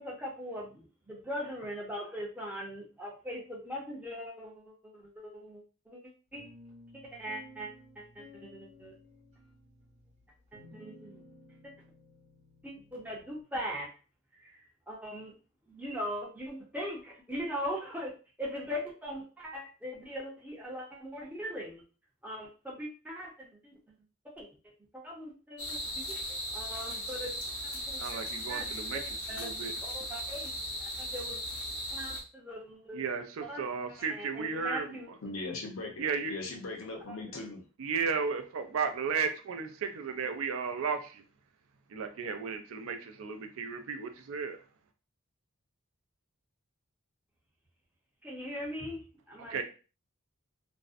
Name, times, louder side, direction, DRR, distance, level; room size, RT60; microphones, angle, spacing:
voice 1, 0.0-6.5 6.9-7.7 8.0-8.9 10.5-11.2 11.6-11.7 12.6-13.9 14.4-15.4 15.7-18.1 18.4-21.8 22.2-23.8 24.4-24.5 24.9-28.2 28.5-29.0 29.3-29.5 29.8-30.5 30.8-31.4 31.9-33.0 33.4-33.7 34.1-35.1 37.1-37.2 48.2-49.6, equal, 5° right, -3 dB, 0.6 m, -40 dB
sound 1, 6.3-13.4, equal, 35° right, 0.8 m, -56 dB
sound 2, 25.6-32.2, equal, 85° left, 1.0 m, -37 dB
voice 2, 28.0-29.7 32.9-35.0 36.0-36.3 37.8-41.2 41.9-44.6 49.5-49.6, right 5 dB, 70° right, 7 dB, 0.4 m, -34 dB
voice 3, 35.2-37.6, left 3 dB, 65° left, 1 dB, 0.7 m, -39 dB
2.5 x 2.0 x 2.4 m, 0.35 s
head